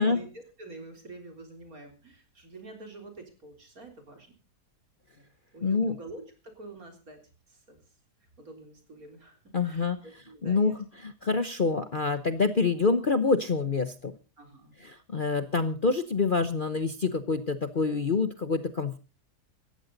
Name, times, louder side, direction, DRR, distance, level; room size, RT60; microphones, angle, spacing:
voice 1, 0.0-4.3 5.1-5.2 5.5-7.2 7.5-7.8 8.4-9.4 9.6-10.8 14.4-14.8 15.4-15.7, right 2 dB, 55° right, 5 dB, 4.2 m, -47 dB
voice 2, 5.6-6.0 9.5-10.0 10.4-14.1 14.8-19.0, left 4 dB, 40° left, 11 dB, 0.9 m, -26 dB
18.5 x 14.0 x 4.0 m, 0.34 s
omnidirectional pair, 1.8 m